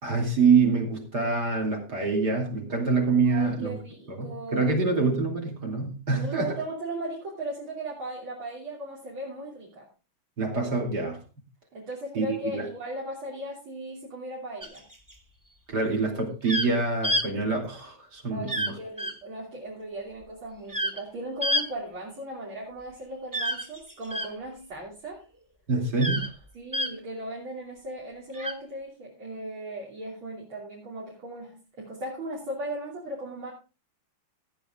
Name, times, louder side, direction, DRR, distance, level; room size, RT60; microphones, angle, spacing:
voice 1, 0.0-3.8 4.1-6.6 10.4-11.2 12.1-12.7 15.7-18.7 25.7-26.3, right 4 dB, 55° right, 1 dB, 3.3 m, -26 dB
voice 2, 3.2-4.7 6.2-9.9 11.7-14.8 18.3-25.2 26.5-33.5, right 1 dB, 85° right, -5 dB, 3.9 m, -37 dB
sound 1, 14.6-15.1 16.4-16.7 17.0-17.3 18.5-18.7 19.0-19.1 20.7-21.0 21.4-21.6 23.3-24.3 26.0-26.3 26.7-26.9 28.3-28.5, equal, 15° right, 0.7 m, -28 dB
15.0 x 9.2 x 3.6 m, 0.33 s
omnidirectional pair, 2.2 m